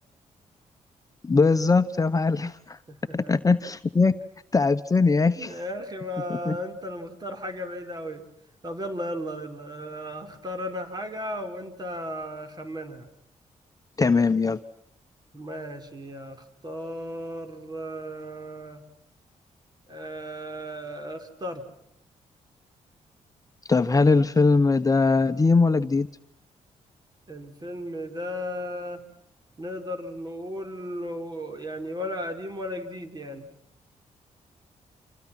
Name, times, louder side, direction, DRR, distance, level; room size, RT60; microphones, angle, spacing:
voice 1, 1.2-2.8 3.1-4.1 4.5-5.6 6.3-6.6 14.0-14.6 23.7-26.1, left 4 dB, 25° left, 9 dB, 1.1 m, -21 dB
voice 2, 2.9-3.5 5.4-8.3 8.6-13.1 15.3-18.8 19.9-21.6 27.3-29.0 29.6-33.5, equal, 30° right, 6 dB, 5.3 m, -35 dB
29.5 x 27.5 x 6.1 m, 0.75 s
cardioid pair, 95°, 13 cm